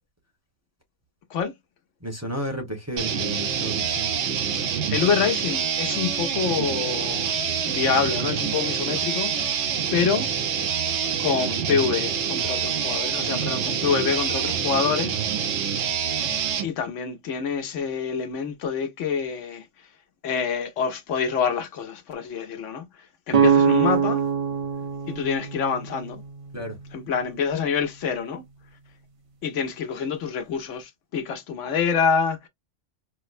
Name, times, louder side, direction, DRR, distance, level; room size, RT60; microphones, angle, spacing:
voice 1, 2.0-4.2 26.5-26.8, equal, 15° right, 1.0 m, -32 dB
sound 1, 3.0-16.7, right 7 dB, 70° right, 1.0 m, -26 dB
voice 2, 4.9-7.3 7.7-9.6 9.9-10.3 11.2-15.3 15.8-16.0 16.6-19.9 20.2-24.2 25.1-26.2 26.9-28.4 29.4-32.5, left 6 dB, 85° left, 1.1 m, -26 dB
sound 2, 23.3-27.1, right 7 dB, 50° right, 0.4 m, -23 dB
4.5 x 2.0 x 2.5 m
omnidirectional pair, 1.2 m